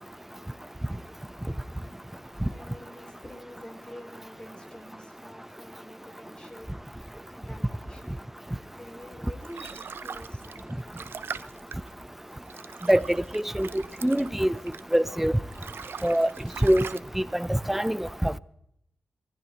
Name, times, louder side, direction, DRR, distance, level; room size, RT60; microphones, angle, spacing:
voice 1, 2.1-12.9 13.6-14.0, left 1 dB, 20° left, 3.2 m, -49 dB
sound 1, 9.0-15.1 15.4-17.0, right 6 dB, 70° right, 0.5 m, -42 dB
voice 2, 13.3-14.5 14.9-15.3 16.0-16.3 16.6-16.9 17.2-18.3, right 1 dB, 5° right, 0.5 m, -24 dB
24.5 x 15.5 x 3.0 m
cardioid pair, 70°, 4 cm